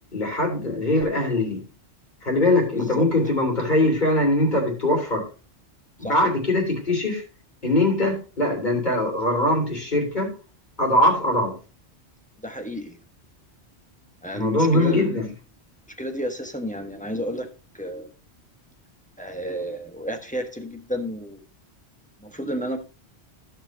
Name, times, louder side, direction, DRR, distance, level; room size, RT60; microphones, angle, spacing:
voice 1, 0.1-1.6 2.2-5.2 6.0-7.2 7.6-10.3 10.8-11.5 14.3-15.3, left 1 dB, 40° left, -1 dB, 3.8 m, -22 dB
voice 2, 2.7-3.1 6.0-6.1 12.4-13.0 14.2-15.2 16.0-17.5 17.7-18.1 19.2-21.4 22.2-22.8, equal, 5° left, 4 dB, 1.2 m, -31 dB
15.5 x 5.8 x 2.8 m, 0.33 s
omnidirectional pair, 1.1 m